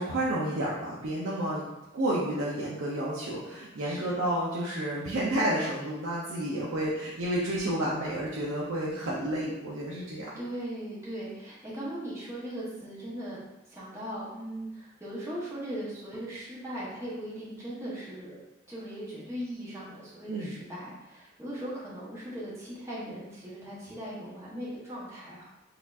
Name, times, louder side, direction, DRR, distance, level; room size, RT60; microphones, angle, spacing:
voice 1, 0.0-10.3 20.3-20.5, right 1 dB, 80° right, -6 dB, 0.6 m, -30 dB
voice 2, 3.8-4.2 10.4-13.4 13.7-18.4 18.7-25.5, right 1 dB, 15° right, -8 dB, 0.9 m, -39 dB
4.1 x 2.7 x 2.4 m, 0.97 s
head